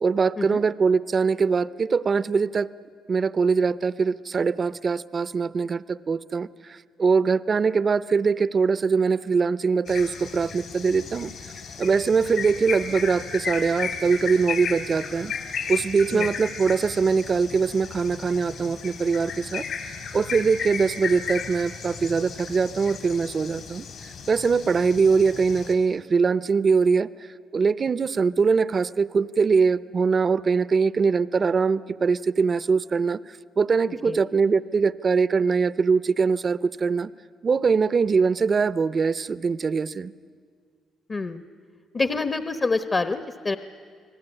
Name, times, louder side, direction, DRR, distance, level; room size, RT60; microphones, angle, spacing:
voice 1, 0.0-2.7 3.1-11.3 11.8-15.3 15.7-19.6 20.1-23.9 24.3-27.1 27.5-37.1 37.4-40.1, right 5 dB, 40° right, 16 dB, 0.7 m, -22 dB
sound 1, 9.9-25.7, left 6 dB, 65° left, 4.8 m, -35 dB
voice 2, 41.1-41.4 41.9-43.6, left 3 dB, 30° left, 10 dB, 1.1 m, -26 dB
29.5 x 20.0 x 10.0 m, 2.1 s
cardioid pair, 100°, 0 cm